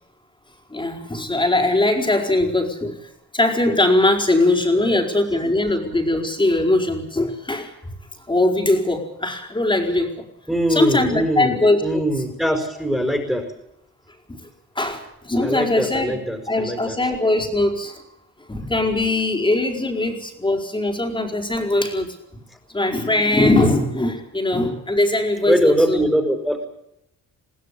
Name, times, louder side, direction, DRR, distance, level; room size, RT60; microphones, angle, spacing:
voice 1, 0.7-7.7 8.3-10.2 10.7-12.0 14.3-14.4 14.7-16.1 16.5-18.0 18.5-22.1 22.7-26.1, left 2 dB, 15° left, 3 dB, 4.6 m, -21 dB
voice 2, 10.5-13.5 15.4-17.0 22.3-22.4 25.5-26.7, equal, ahead, 3 dB, 5.0 m, -22 dB
22.0 x 15.5 x 8.5 m, 0.81 s
cardioid pair, 90°, 30 cm